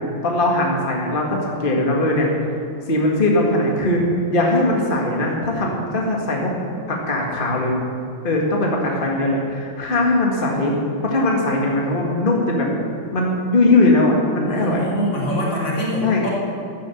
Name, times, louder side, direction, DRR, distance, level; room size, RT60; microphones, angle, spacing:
voice 1, 0.2-2.3 2.9-6.5 6.9-7.8 8.2-10.7 11.0-12.7 13.1-14.9 16.0-16.2, left 2 dB, 30° left, -1 dB, 2.0 m, -20 dB
voice 2, 14.4-16.3, left 1 dB, 75° left, -5 dB, 4.1 m, -23 dB
13.0 x 11.5 x 7.1 m, 2.4 s
omnidirectional pair, 2.0 m